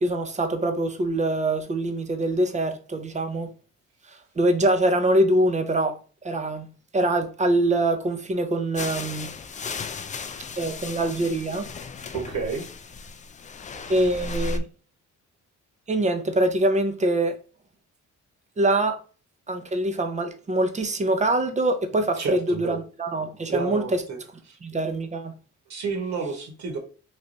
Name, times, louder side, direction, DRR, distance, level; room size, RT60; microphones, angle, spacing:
voice 1, 0.0-3.5 4.4-6.0 6.2-6.7 6.9-9.3 10.6-11.7 13.9-14.6 15.9-17.3 18.6-19.0 19.5-24.0 24.6-25.3, right 1 dB, 25° right, 0.7 m, -24 dB
sound 1, 8.7-14.6, left 3 dB, 25° left, 0.4 m, -35 dB
voice 2, 12.1-12.6 22.2-22.8 23.5-24.2 24.5-24.6 25.7-26.8, right 4 dB, 65° right, 1.4 m, -30 dB
3.4 x 2.6 x 3.9 m
cardioid pair, 90°, 30 cm